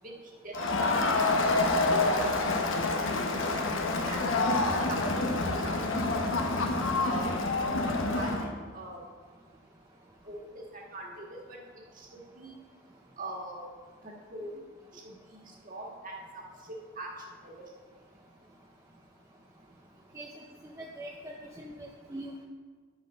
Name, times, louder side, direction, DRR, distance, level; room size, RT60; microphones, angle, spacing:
voice 1, 0.0-3.6 4.1-6.5 7.0-7.3 8.1-9.0 10.2-11.6 11.9-12.6 13.2-13.7 14.0-14.6 14.9-17.6, right 1 dB, 40° right, -1 dB, 1.7 m, -43 dB
Crowd, 0.5-8.5, left 2 dB, 65° left, 0.9 m, -27 dB
voice 2, 20.8-22.4, right 1 dB, 15° right, -2 dB, 0.6 m, -42 dB
10.0 x 6.7 x 5.1 m, 1.5 s
head